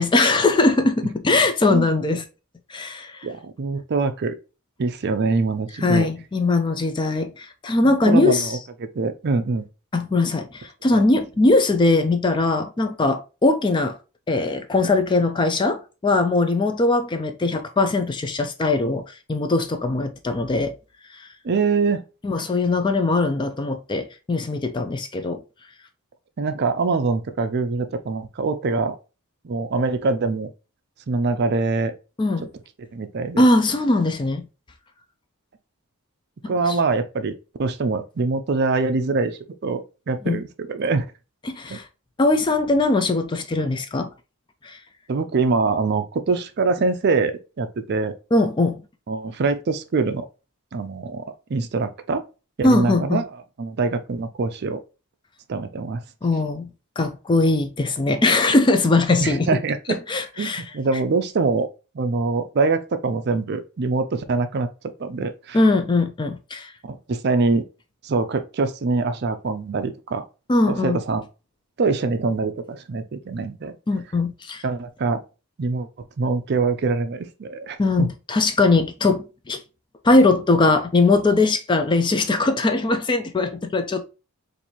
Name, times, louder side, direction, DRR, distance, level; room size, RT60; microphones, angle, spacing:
voice 1, 0.0-2.2 2.7-3.3 5.8-8.6 9.9-14.0 14.3-20.8 21.1-21.3 22.2-25.4 32.2-32.5 33.4-34.4 36.4-36.8 40.2-40.4 41.4-41.9 42.2-44.1 44.6-44.8 48.3-48.8 52.6-53.2 56.2-56.7 57.0-59.6 59.9-60.6 65.5-66.7 70.5-71.0 73.9-74.6 77.8-79.6 80.0-84.1, left 2 dB, 20° left, 0.3 m, -20 dB
voice 2, 3.2-4.4 4.8-6.1 7.8-8.6 8.9-9.7 10.9-11.0 21.4-22.0 26.4-29.0 29.4-30.5 31.1-31.9 32.9-33.5 36.5-40.4 40.7-41.1 41.7-41.8 45.1-48.2 49.1-50.3 50.7-51.2 51.5-52.2 52.6-53.3 53.6-54.8 55.5-56.0 59.2-59.8 60.4-61.7 61.9-64.7 65.0-65.6 66.8-67.6 68.0-70.2 70.8-71.2 71.8-73.7 74.6-75.2 75.6-75.9 76.2-78.1, right 4 dB, 50° right, 0.4 m, -24 dB
4.3 x 2.6 x 2.8 m
head